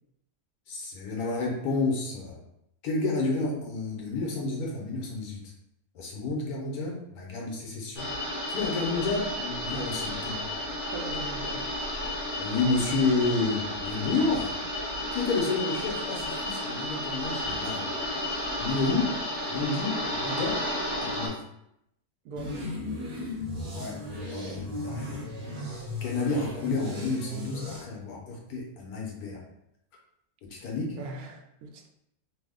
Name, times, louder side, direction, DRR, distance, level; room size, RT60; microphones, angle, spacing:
voice 1, 0.7-2.4 2.8-5.4 5.9-8.1 8.5-10.4 12.4-14.5 15.1-17.9 18.6-19.2 19.5-21.4 23.7-25.2 26.0-29.4 30.4-31.0, left 3 dB, 80° left, -1 dB, 1.3 m, -30 dB
sound 1, 8.0-21.3, left 1 dB, 40° left, 0.7 m, -32 dB
voice 2, 10.9-11.7 22.2-22.7 30.6-30.7 30.9-31.9, right 3 dB, 85° right, 3 dB, 1.1 m, -40 dB
sound 2, 22.4-27.8, left 1 dB, 35° right, 0.7 m, -36 dB
3.2 x 2.0 x 3.5 m, 0.78 s
omnidirectional pair, 1.6 m